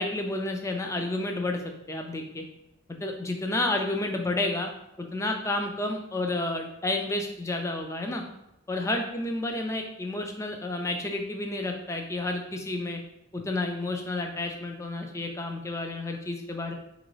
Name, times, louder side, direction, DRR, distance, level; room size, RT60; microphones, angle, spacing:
voice 1, 0.0-1.6 1.9-2.4 2.9-4.7 5.0-8.2 8.7-13.0 13.3-16.7, left 2 dB, 15° left, 3 dB, 0.3 m, -30 dB
4.6 x 2.5 x 3.0 m, 0.87 s
head